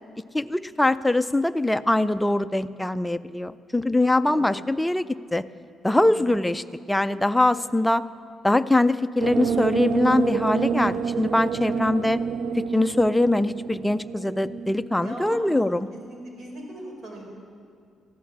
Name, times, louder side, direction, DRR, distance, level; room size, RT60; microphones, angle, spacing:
voice 1, 0.3-5.0 5.3-5.4 5.8-8.0 8.4-12.2 12.6-15.9, left 1 dB, 5° left, 11 dB, 0.4 m, -22 dB
voice 2, 4.0-4.5 6.0-6.5 15.0-15.4 15.7-17.2, right 1 dB, 50° right, 0 dB, 4.5 m, -40 dB
sound 1, 9.2-15.6, right 6 dB, 75° right, 0.4 m, -28 dB
14.5 x 11.0 x 7.4 m, 2.3 s
cardioid pair, 90°, 0 cm